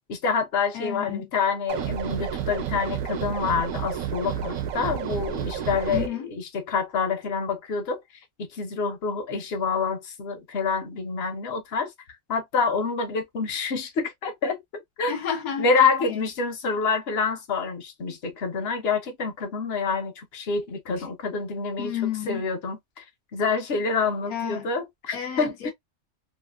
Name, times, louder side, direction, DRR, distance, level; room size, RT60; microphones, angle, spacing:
voice 1, 0.1-8.0 8.5-11.9 12.3-15.1 15.6-21.9 22.3-23.0 23.3-25.7, left 5 dB, 50° left, 1.0 m, -27 dB
voice 2, 0.7-1.3 5.9-6.3 15.1-15.7 16.0-16.2 21.0-21.1 21.8-22.4 24.3-24.7 25.1-25.7, left 9 dB, 85° left, 1.2 m, -31 dB
sound 1, 1.7-6.1, right 8 dB, 80° right, 1.1 m, -30 dB
3.2 x 2.4 x 2.3 m
omnidirectional pair, 1.5 m